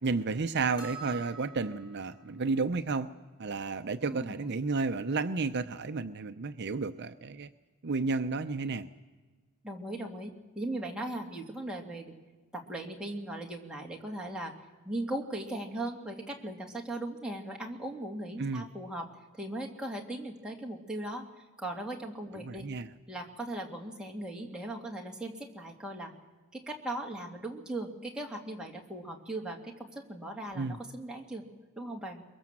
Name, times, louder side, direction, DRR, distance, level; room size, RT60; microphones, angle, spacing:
voice 1, 0.0-3.1 3.4-7.5 7.8-8.9 18.4-18.6 22.4-22.9 30.6-30.8, right 4 dB, 55° right, 9 dB, 0.7 m, -32 dB
sound 1, 0.8-2.1, right 6 dB, 20° left, 5.4 m, -45 dB
voice 2, 4.0-4.5 9.6-12.2 12.5-14.5 14.8-19.1 19.3-21.3 21.6-22.6 23.1-26.1 26.5-31.4 31.8-32.2, right 1 dB, 5° right, -1 dB, 2.5 m, -38 dB
23.0 x 22.5 x 7.5 m, 1.3 s
head